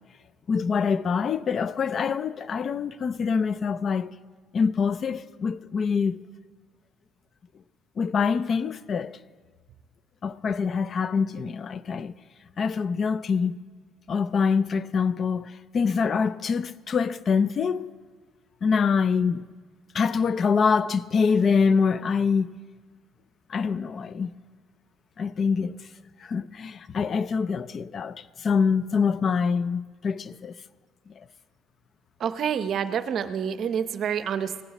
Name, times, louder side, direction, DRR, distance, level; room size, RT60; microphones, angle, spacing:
voice 1, 0.5-4.1 4.5-6.2 8.0-9.1 10.2-12.1 12.6-13.6 14.1-17.9 18.6-19.4 19.9-22.5 23.5-24.3 25.2-25.8 26.2-30.5, left 5 dB, 30° left, 0.4 m, -25 dB
voice 2, 32.2-34.6, right 8 dB, 40° right, 0.7 m, -28 dB
17.0 x 16.0 x 4.1 m
cardioid pair, 160°, 0 cm